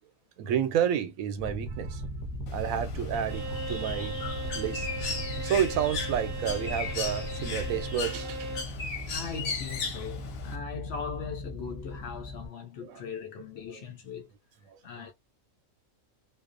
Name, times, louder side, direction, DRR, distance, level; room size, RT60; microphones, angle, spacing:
voice 1, 0.4-2.0 2.5-4.2 4.5-4.9 5.4-8.5 12.8-13.0 13.7-13.8 14.7-15.1, right 9 dB, 85° right, 1.0 m, -30 dB
sound 1, 1.4-12.5, equal, 20° left, 0.7 m, -38 dB
Bird, 2.5-10.6, left 4 dB, 90° left, 1.1 m, -37 dB
Bowed string instrument, 3.1-8.8, right 2 dB, 55° right, 0.8 m, -39 dB
voice 2, 9.1-14.3 14.8-15.1, left 6 dB, 65° left, 0.7 m, -39 dB
2.6 x 2.0 x 2.5 m
omnidirectional pair, 1.4 m